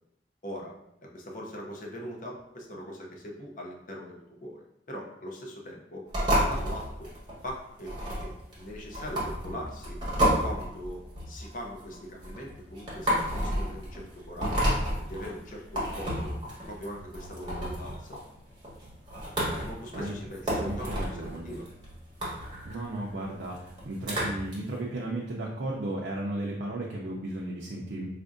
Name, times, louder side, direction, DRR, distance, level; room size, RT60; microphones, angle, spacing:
voice 1, 0.4-0.7 1.0-4.6 4.9-6.1 6.3-7.1 7.4-10.0 10.4-11.0 11.3-14.8 15.1-16.3 16.7-18.2 19.6-21.7, equal, 45° left, -1 dB, 0.6 m, -41 dB
sound 1, 6.1-24.5, equal, 25° right, 1.0 m, -31 dB
voice 2, 20.6-21.6 22.6-28.1, right 1 dB, 75° right, -2 dB, 0.5 m, -35 dB
4.2 x 2.5 x 2.5 m, 0.81 s
head